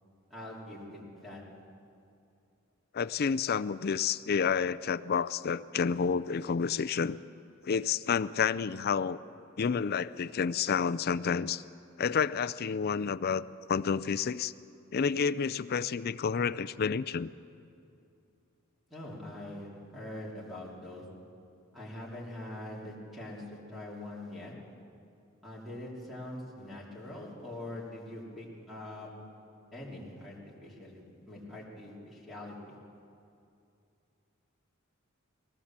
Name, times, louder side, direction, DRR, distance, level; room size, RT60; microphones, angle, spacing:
voice 1, 0.3-1.4 18.9-21.0 21.7-24.5 25.4-29.1 29.7-31.0 31.3-32.7, left 1 dB, ahead, -5 dB, 3.3 m, -43 dB
voice 2, 2.9-7.2 7.6-9.2 9.6-11.6 12.0-13.4 13.7-14.5 14.9-17.3, left 6 dB, 50° left, 14 dB, 0.4 m, -29 dB
20.5 x 17.5 x 7.4 m, 2.6 s
head